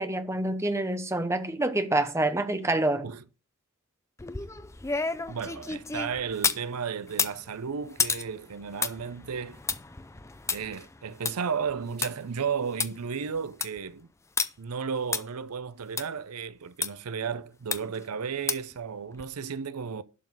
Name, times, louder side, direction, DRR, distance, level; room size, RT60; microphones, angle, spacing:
voice 1, 0.0-3.1, right 2 dB, 10° right, 0.9 m, -27 dB
sound 1, 4.2-6.7 7.1-12.1 12.5-12.6 12.8-12.9 13.3-13.8 14.4-14.5 15.1-15.2 16.0-16.1 16.8-16.9 17.7-18.0 18.5-18.8 19.2-19.3, left 5 dB, 15° left, 0.4 m, -31 dB
voice 2, 5.3-9.6 10.5-14.1 14.6-20.0, right 6 dB, 85° right, 0.6 m, -34 dB
11.5 x 4.0 x 7.6 m
head